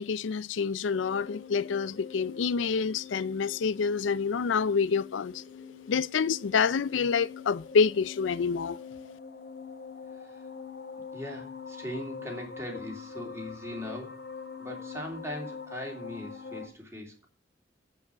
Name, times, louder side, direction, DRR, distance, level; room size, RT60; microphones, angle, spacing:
voice 1, 0.0-5.4 5.9-8.8, left 5 dB, 80° left, 0.4 m, -27 dB
sound 1, 0.9-16.7, left 5 dB, 55° left, 1.9 m, -44 dB
voice 2, 11.1-14.1 14.6-17.3, left 1 dB, 15° right, 2.9 m, -40 dB
8.1 x 7.0 x 8.3 m
head